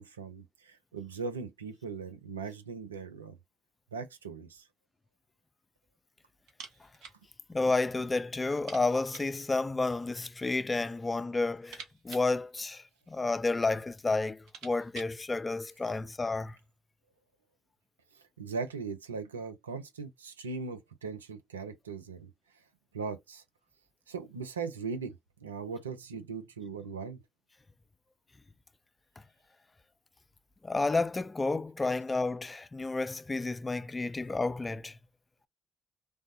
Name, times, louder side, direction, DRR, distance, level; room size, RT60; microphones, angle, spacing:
voice 1, 0.0-3.4 3.9-4.7 18.1-22.3 22.9-23.4 24.1-27.2, right 5 dB, 90° right, 0.5 m, -39 dB
sound 1, 6.5-7.2 7.5-7.6 7.9-8.0 8.5-9.4 10.3-10.9 11.3-13.2 13.9-14.0 14.3-15.2, right 5 dB, 70° right, 0.8 m, -50 dB
voice 2, 7.5-16.6 30.6-35.0, left 3 dB, 25° left, 0.3 m, -31 dB
3.3 x 2.0 x 2.5 m
hypercardioid pair, 45°, 0 cm